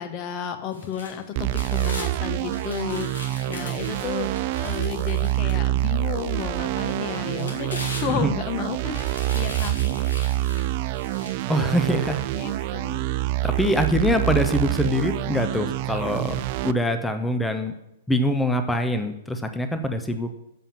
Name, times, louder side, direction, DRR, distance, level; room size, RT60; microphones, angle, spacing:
voice 1, 0.0-4.3 4.6-9.0 9.3-9.7 11.9-13.0, left 8 dB, 35° left, 8 dB, 1.1 m, -32 dB
sound 1, 0.7-2.1 2.5-5.9 6.4-6.5 7.1-8.5 8.9-11.5 12.0-12.1, left 2 dB, 85° left, 2.5 m, -39 dB
sound 2, 1.4-16.7, right 16 dB, 50° right, 0.4 m, -26 dB
voice 2, 11.5-12.2 13.4-17.7 18.1-20.3, equal, 5° left, 7 dB, 0.7 m, -24 dB
7.3 x 5.7 x 7.1 m, 0.86 s
hypercardioid pair, 115°, 0 cm